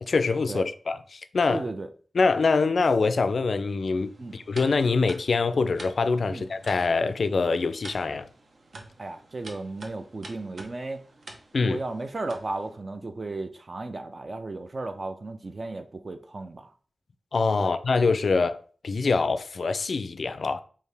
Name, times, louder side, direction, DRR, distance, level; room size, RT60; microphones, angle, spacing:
voice 1, 0.0-1.6 2.2-8.3 11.5-11.8 17.3-18.6 18.8-20.6, left 4 dB, 75° left, 0.3 m, -24 dB
voice 2, 1.5-1.9 4.2-4.4 6.3-6.5 9.0-11.0 11.6-16.7 17.6-17.7, right 2 dB, 50° right, 0.4 m, -35 dB
sound 1, 4.0-12.8, right 2 dB, 80° right, 0.7 m, -48 dB
4.7 x 2.8 x 3.3 m
wide cardioid pair, 90°, 0 cm